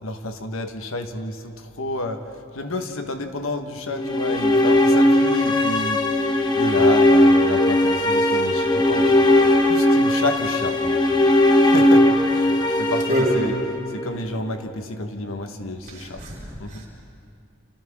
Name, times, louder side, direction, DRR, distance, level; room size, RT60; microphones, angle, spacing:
voice 1, 0.0-2.2 2.5-6.0 6.5-11.1 11.6-13.6 13.9-16.2 16.6-16.8, left 2 dB, 80° left, 6 dB, 1.4 m, -30 dB
sound 1, 3.9-14.1, left 1 dB, 20° left, 1.3 m, -18 dB
voice 2, 15.9-16.9, equal, 40° right, -4 dB, 5.9 m, -26 dB
30.0 x 28.0 x 3.7 m, 2.4 s
head